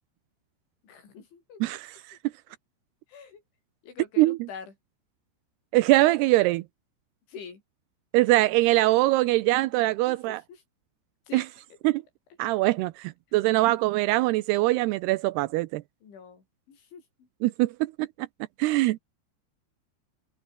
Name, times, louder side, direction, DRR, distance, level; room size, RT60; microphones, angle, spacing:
voice 1, 0.8-1.8 3.1-3.4 3.8-4.7 7.3-7.6 10.1-10.6 11.3-11.5 12.8-12.9 16.0-17.3, left 6 dB, 80° left, 7.9 m, -45 dB
voice 2, 1.6-2.2 4.2-4.4 5.7-6.6 8.1-10.4 11.3-11.5 11.8-12.0 12.4-15.8 17.4-18.3 18.6-19.0, right 19 dB, 85° right, 2.4 m, -23 dB
omnidirectional pair, 5.4 m